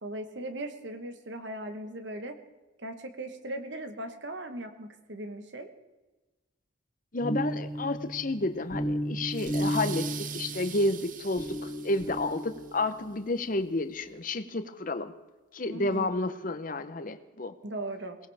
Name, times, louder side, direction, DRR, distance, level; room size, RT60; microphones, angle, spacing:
voice 1, 0.0-2.4 2.8-5.7 15.7-16.1 17.6-18.2, right 1 dB, 60° right, 7 dB, 1.2 m, -38 dB
voice 2, 7.1-15.1 15.5-17.5, left 2 dB, 40° left, 10 dB, 0.8 m, -31 dB
sound 1, 7.2-13.3, equal, 15° left, 2.5 m, -34 dB
sound 2, 9.3-12.7, right 9 dB, 40° right, 0.7 m, -43 dB
22.5 x 18.5 x 3.5 m, 1.2 s
head